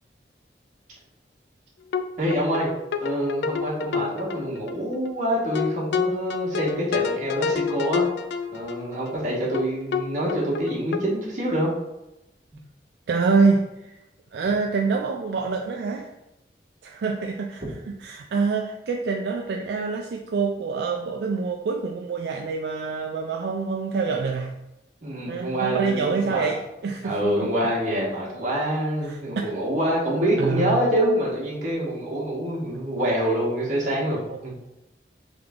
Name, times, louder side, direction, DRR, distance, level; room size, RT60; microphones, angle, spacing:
sound 1, 1.9-2.0 2.3-4.8 5.1-5.2 5.6-9.1 9.5-9.7 9.9-10.0 10.3-11.0, left 6 dB, 75° left, 0.3 m, -28 dB
voice 1, 2.2-2.7 3.0-8.0 8.5-11.7 25.0-26.5 27.0-34.5, right 1 dB, 45° right, -6 dB, 1.4 m, -26 dB
voice 2, 13.1-14.0 14.3-16.1 16.8-17.6 18.0-24.5 25.3-27.5 29.0-29.5 30.4-30.8 32.7-32.8 34.3-34.4, right 4 dB, 70° right, 2 dB, 0.3 m, -26 dB
3.6 x 3.4 x 3.6 m, 0.93 s
head